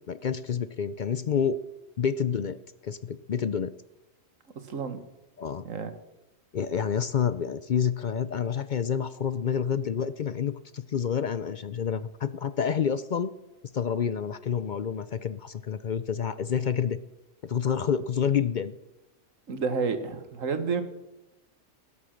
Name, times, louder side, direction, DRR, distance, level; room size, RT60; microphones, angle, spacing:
voice 1, 0.1-1.6 2.0-2.6 2.8-3.7 5.4-5.6 6.5-13.3 13.7-17.0 17.4-18.7, left 7 dB, 60° left, 14 dB, 0.5 m, -28 dB
voice 2, 4.7-5.0 5.6-5.9 19.5-20.8, right 5 dB, 70° right, 9 dB, 1.7 m, -30 dB
19.0 x 8.4 x 6.4 m, 0.99 s
omnidirectional pair, 1.4 m